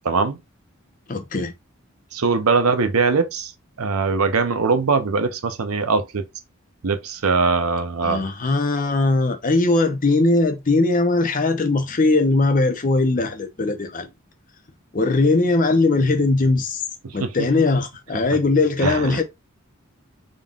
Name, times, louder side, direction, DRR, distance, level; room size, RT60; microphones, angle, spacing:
voice 1, 0.0-0.4 2.1-3.5 3.8-6.3 6.8-8.2 17.0-17.5 18.8-19.2, right 4 dB, 85° right, 0.6 m, -21 dB
voice 2, 1.1-1.5 8.0-14.1 14.9-16.8 17.1-19.2, left 3 dB, 40° left, 0.6 m, -20 dB
3.8 x 2.3 x 3.5 m
head